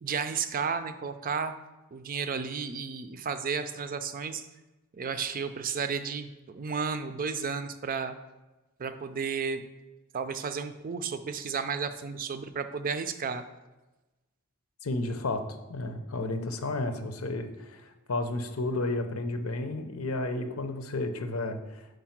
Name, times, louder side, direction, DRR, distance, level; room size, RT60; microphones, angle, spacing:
voice 1, 0.0-1.5 1.9-4.5 4.9-8.1 8.8-9.6 10.1-13.4, right 5 dB, 40° right, 10 dB, 0.4 m, -33 dB
voice 2, 14.8-21.9, left 2 dB, 80° left, 7 dB, 0.7 m, -32 dB
5.3 x 4.9 x 5.8 m, 1.1 s
head